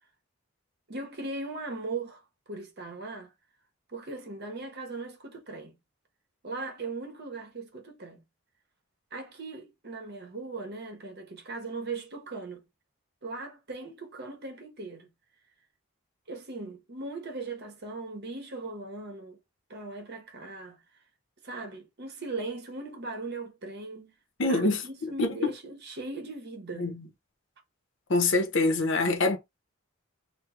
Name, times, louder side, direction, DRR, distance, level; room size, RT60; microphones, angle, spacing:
voice 1, 0.9-3.3 3.9-5.8 6.4-8.2 9.1-12.7 13.2-15.1 16.3-19.4 19.7-20.8 21.4-24.2 24.4-26.9, right 3 dB, 50° right, 0.9 m, -39 dB
voice 2, 24.4-24.8 25.2-25.5 26.8-26.9 28.1-29.4, left 3 dB, 60° left, 0.7 m, -24 dB
3.5 x 2.1 x 2.9 m
head